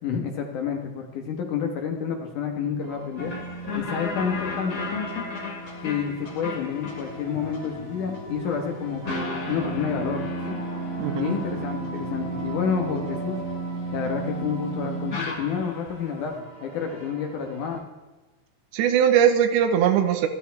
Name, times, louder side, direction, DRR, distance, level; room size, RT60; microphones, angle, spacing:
voice 1, 0.0-3.3 3.8-5.2 5.8-10.6 11.1-13.4 13.9-17.8, left 6 dB, 65° left, 3 dB, 2.1 m, -29 dB
sound 1, 2.8-17.8, left 1 dB, 65° right, 5.6 m, -41 dB
sound 2, 3.2-15.9, right 1 dB, 30° left, 2.2 m, -33 dB
voice 2, 11.0-11.4 18.7-20.3, right 9 dB, 80° right, 7 dB, 3.3 m, -20 dB
13.0 x 13.0 x 4.6 m, 1.2 s
omnidirectional pair, 5.2 m